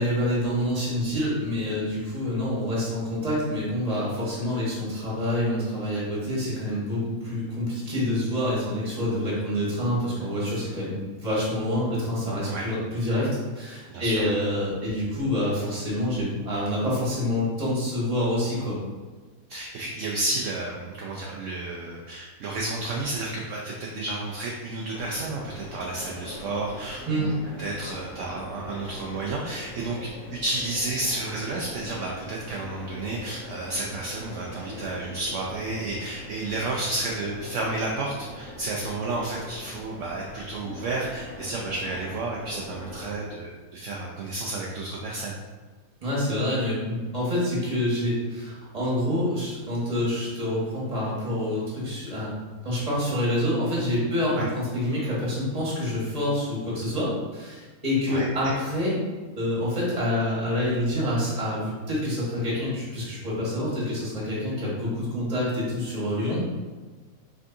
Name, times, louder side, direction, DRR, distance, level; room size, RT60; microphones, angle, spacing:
voice 1, 0.0-18.8 27.1-27.3 46.0-52.3 52.6-58.9 59.4-66.4, left 1 dB, 25° right, -6 dB, 1.5 m, -27 dB
voice 2, 13.9-14.3 19.5-27.3 27.6-30.0 30.3-45.3 54.3-54.4 58.1-58.5, right 2 dB, 65° right, -2 dB, 0.9 m, -31 dB
sound 1, 24.9-43.2, left 1 dB, 70° left, 1.5 m, -42 dB
5.1 x 3.6 x 2.6 m, 1.3 s
omnidirectional pair, 1.5 m